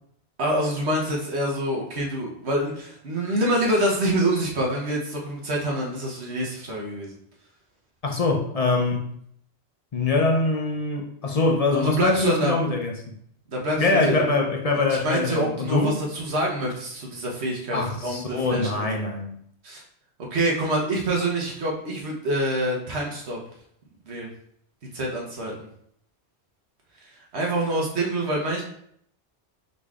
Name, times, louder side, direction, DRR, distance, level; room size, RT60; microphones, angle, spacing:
voice 1, 0.4-7.2 11.7-12.6 13.5-14.2 14.7-18.9 19.6-19.8 20.2-23.4 24.1-24.3 24.9-25.7 27.0-28.6, right 1 dB, 70° right, -1 dB, 1.3 m, -26 dB
voice 2, 8.0-9.1 9.9-13.0 13.8-16.0 17.7-19.4, left 3 dB, 45° left, 1 dB, 0.6 m, -23 dB
5.0 x 4.0 x 2.4 m, 0.69 s
omnidirectional pair, 1.2 m